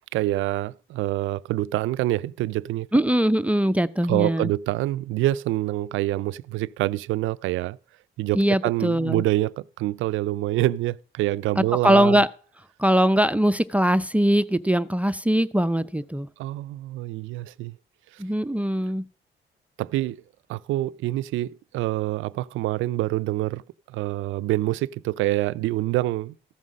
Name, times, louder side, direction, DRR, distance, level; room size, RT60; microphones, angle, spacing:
voice 1, 0.1-2.9 4.1-7.8 8.2-12.2 16.4-17.8 18.1-18.2 19.8-20.2 20.5-23.6 23.9-26.4, right 16 dB, 85° right, 0.4 m, -26 dB
voice 2, 2.9-4.5 8.3-9.2 11.6-12.3 12.8-16.3 18.2-19.0, equal, 5° right, 0.5 m, -21 dB
14.5 x 5.4 x 6.2 m
cardioid pair, 90°, 20 cm